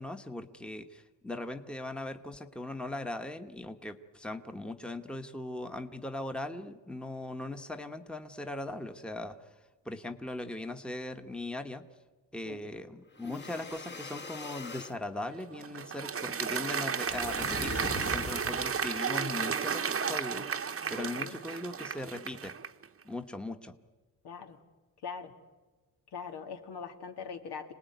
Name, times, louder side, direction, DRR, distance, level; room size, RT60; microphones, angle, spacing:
voice 1, 0.0-9.5 9.8-11.8 12.3-22.5 23.0-23.7, left 2 dB, ahead, 7 dB, 1.2 m, -39 dB
sound 1, 13.1-15.0 17.0-18.9, left 4 dB, 25° left, 1.4 m, -41 dB
Applause, 15.2-22.9, right 6 dB, 35° right, 1.0 m, -33 dB
voice 2, 20.9-21.4 24.2-24.6 25.0-25.3 26.1-27.7, left 6 dB, 80° left, 5 dB, 2.3 m, -42 dB
26.5 x 19.0 x 9.3 m, 1.3 s
cardioid pair, 115°, 39 cm